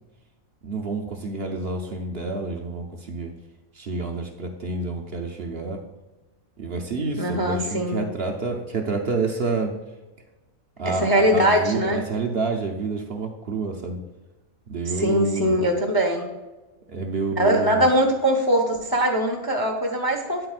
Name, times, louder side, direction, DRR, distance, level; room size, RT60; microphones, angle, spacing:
voice 1, 0.6-3.3 3.8-5.8 6.6-9.7 10.8-14.0 14.7-15.6 16.9-17.8, right 3 dB, 55° right, 3 dB, 0.8 m, -28 dB
voice 2, 7.2-8.0 10.8-12.0 14.8-16.3 17.4-20.5, equal, 20° left, 1 dB, 0.6 m, -21 dB
8.9 x 7.7 x 2.4 m, 1.1 s
omnidirectional pair, 1.5 m